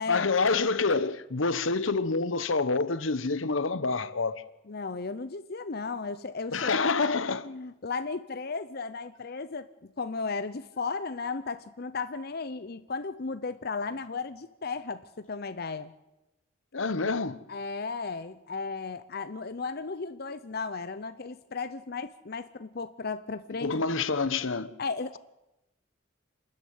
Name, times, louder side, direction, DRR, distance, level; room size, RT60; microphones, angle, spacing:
voice 1, 0.1-4.4 6.5-7.5 16.7-17.4 23.6-24.7, left 4 dB, 80° left, 1.0 m, -27 dB
voice 2, 4.7-6.9 7.4-9.7 10.0-15.9 17.5-23.7 24.8-25.2, left 4 dB, 50° left, 0.7 m, -35 dB
27.0 x 13.5 x 9.5 m
head